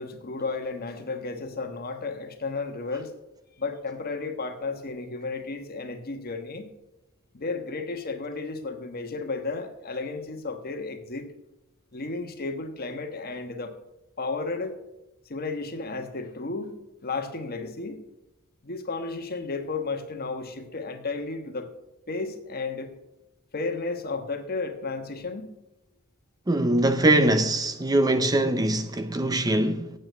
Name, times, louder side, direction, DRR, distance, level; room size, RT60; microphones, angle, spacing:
voice 1, 0.0-3.1 3.6-6.7 7.3-11.3 11.9-13.7 14.2-14.8 15.3-16.7 17.0-18.0 18.6-21.7 22.1-22.9 23.5-25.5, left 3 dB, 45° left, 1.3 m, -33 dB
voice 2, 26.5-29.9, right 1 dB, 20° right, 0.5 m, -22 dB
8.8 x 7.8 x 6.9 m
head